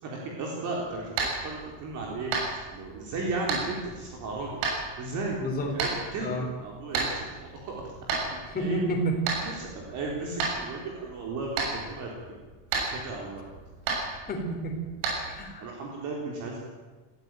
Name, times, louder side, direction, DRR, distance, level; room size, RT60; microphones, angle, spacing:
voice 1, 0.0-4.6 5.0-8.1 8.5-8.9 9.4-12.4 12.7-13.4 15.6-16.7, right 3 dB, 40° right, -1 dB, 4.0 m, -35 dB
sound 1, 0.8-15.4, right 4 dB, 70° right, 6.9 m, -34 dB
voice 2, 5.4-5.8 6.2-6.5 8.5-9.2 14.3-14.8 15.3-15.7, equal, 20° left, 1 dB, 4.1 m, -30 dB
19.5 x 15.5 x 9.1 m, 1.3 s
cardioid pair, 175°, 45 cm